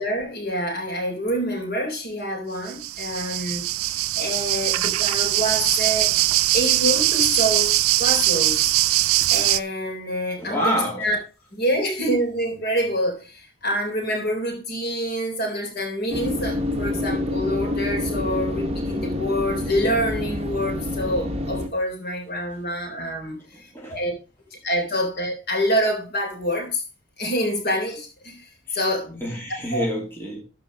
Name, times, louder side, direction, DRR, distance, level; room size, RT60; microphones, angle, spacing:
voice 1, 0.0-6.1 6.5-8.7 9.3-11.2 11.5-24.1 24.6-26.8 27.2-29.3 29.7-29.9, equal, 45° left, 3.6 m, -26 dB
sound 1, 2.7-9.6, right 15 dB, 90° right, 0.5 m, -21 dB
voice 2, 10.4-11.1 23.5-24.0 28.7-28.8 29.2-30.4, equal, 10° left, 2.8 m, -27 dB
sound 2, 16.1-21.7, left 1 dB, 30° right, 1.4 m, -27 dB
13.0 x 5.2 x 5.1 m
head